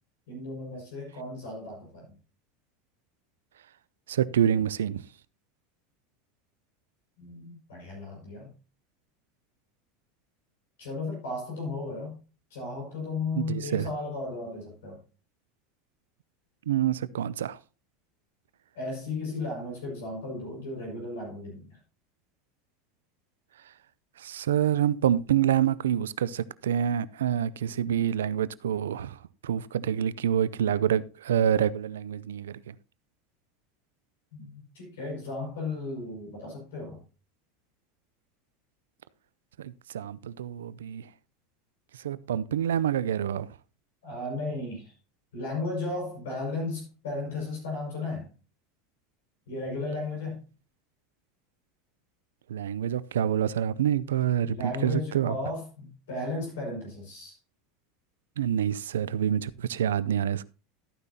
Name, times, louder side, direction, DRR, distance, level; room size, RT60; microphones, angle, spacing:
voice 1, 0.3-2.2 7.2-8.5 10.8-12.2 12.5-15.0 18.7-21.8 34.3-37.0 44.0-44.9 45.3-48.3 49.5-50.4 54.4-57.4, left 2 dB, 75° left, 5.6 m, -35 dB
voice 2, 4.1-5.0 13.3-13.9 16.7-17.6 24.2-32.7 39.6-41.1 42.0-43.5 52.5-55.4 58.4-60.4, right 9 dB, 80° right, 0.5 m, -27 dB
13.5 x 9.6 x 2.8 m
hypercardioid pair, 85°, 0 cm